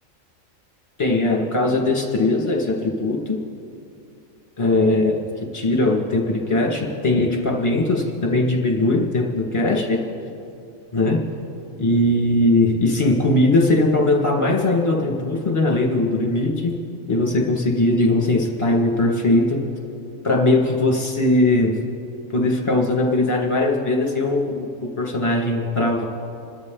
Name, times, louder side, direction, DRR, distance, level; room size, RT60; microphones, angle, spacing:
voice 1, 1.0-3.4 4.6-5.2 5.5-10.0 10.9-11.2 11.8-16.8 17.1-19.6 20.2-21.7 22.3-26.0, left 2 dB, 20° left, -1 dB, 2.0 m, -20 dB
26.5 x 13.0 x 4.0 m, 2.6 s
omnidirectional pair, 1.4 m